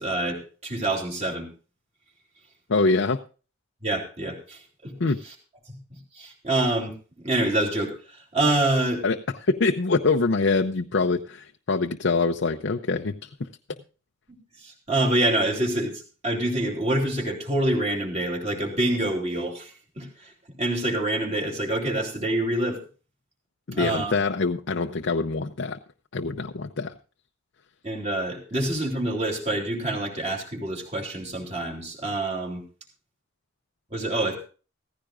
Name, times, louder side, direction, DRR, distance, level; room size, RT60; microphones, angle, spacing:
voice 1, 0.0-1.5 3.8-4.9 5.2-5.3 5.7-9.0 14.6-20.3 20.6-22.8 23.7-24.2 27.8-32.6 33.9-34.4, right 1 dB, 30° right, 1 dB, 3.2 m, -26 dB
voice 2, 2.7-3.2 5.0-5.2 9.0-9.2 9.4-13.3 23.7-25.8 26.1-26.9, left 3 dB, 60° left, 4 dB, 0.6 m, -24 dB
16.0 x 15.0 x 2.5 m, 0.36 s
head